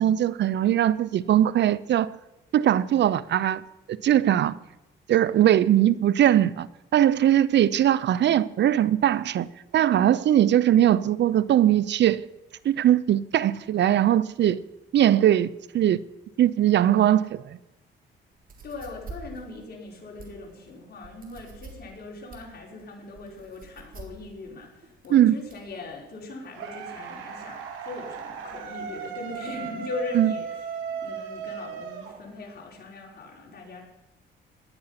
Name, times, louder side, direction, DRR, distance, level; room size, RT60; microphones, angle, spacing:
voice 1, 0.0-2.1 2.5-3.6 3.9-4.6 5.1-6.7 6.9-9.5 9.7-12.2 12.6-14.6 14.9-15.5 15.7-16.0 16.4-17.6 25.1-25.4 30.1-30.3, right 11 dB, 60° right, 0.7 m, -20 dB
sound 1, 18.4-25.7, right 4 dB, 45° right, 3.8 m, -46 dB
voice 2, 18.6-30.6 30.9-33.8, left 2 dB, 50° left, 5.2 m, -40 dB
sound 2, 26.5-32.6, right 6 dB, 85° right, 2.7 m, -36 dB
17.5 x 11.0 x 5.9 m
cardioid pair, 90°, 20 cm